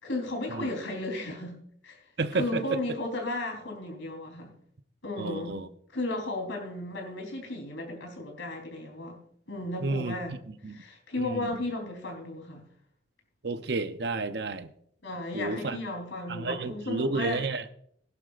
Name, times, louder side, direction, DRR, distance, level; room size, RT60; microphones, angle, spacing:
voice 1, 0.0-1.6 1.8-2.0 2.3-4.5 5.0-5.6 5.9-9.2 9.5-10.3 10.7-12.6 15.0-17.4, left 2 dB, 90° left, 3 dB, 3.7 m, -34 dB
voice 2, 2.2-2.8 5.2-5.7 9.8-10.1 10.5-10.8 11.2-11.6 13.4-14.7 15.3-15.8 16.3-17.6, right 3 dB, 60° right, 10 dB, 0.7 m, -31 dB
16.5 x 11.5 x 2.5 m, 0.66 s
head